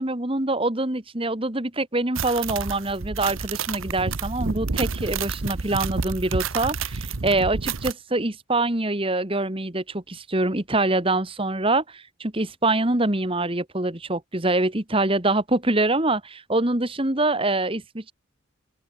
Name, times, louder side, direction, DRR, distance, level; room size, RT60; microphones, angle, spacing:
voice 1, 0.0-18.1, right 2 dB, 25° right, 1.7 m, -25 dB
sound 1, 2.1-7.9, right 5 dB, 75° right, 1.0 m, -29 dB
head